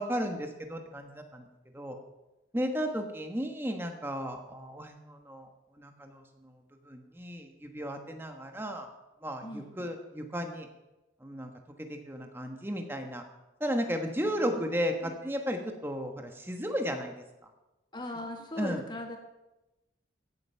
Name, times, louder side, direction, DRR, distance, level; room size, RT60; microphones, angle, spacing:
voice 1, 0.0-1.5 1.7-2.0 2.5-5.5 5.8-6.5 6.9-8.9 9.2-10.7 11.2-11.5 11.8-13.2 13.6-17.2 18.6-18.8, equal, 10° right, 4 dB, 1.3 m, -34 dB
voice 2, 14.1-14.6 15.0-15.2 17.9-19.2, left 1 dB, 25° left, 2 dB, 1.7 m, -39 dB
16.0 x 7.9 x 5.7 m, 1.0 s
head